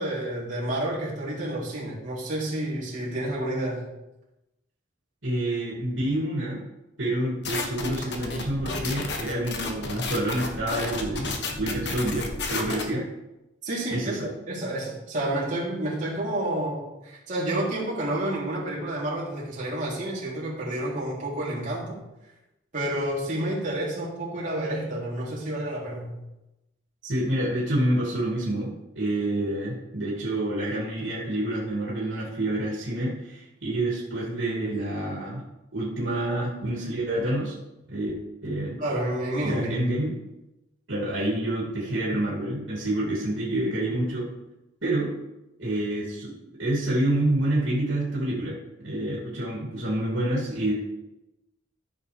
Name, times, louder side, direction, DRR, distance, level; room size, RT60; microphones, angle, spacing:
voice 1, 0.0-3.8 13.6-14.1 14.5-22.0 22.7-26.1 38.8-39.9, right 1 dB, 40° right, -7 dB, 3.4 m, -29 dB
voice 2, 5.2-6.6 7.0-13.0 13.9-14.3 27.0-35.4 35.7-37.5 37.9-38.1 38.4-38.8 39.4-40.1 40.9-44.3 44.8-45.1 45.6-46.3 46.6-48.5 48.8-50.7, right 1 dB, 80° right, -5 dB, 2.7 m, -28 dB
sound 1, 7.4-12.8, left 3 dB, 60° left, 1.2 m, -32 dB
14.0 x 6.6 x 3.5 m, 0.96 s
head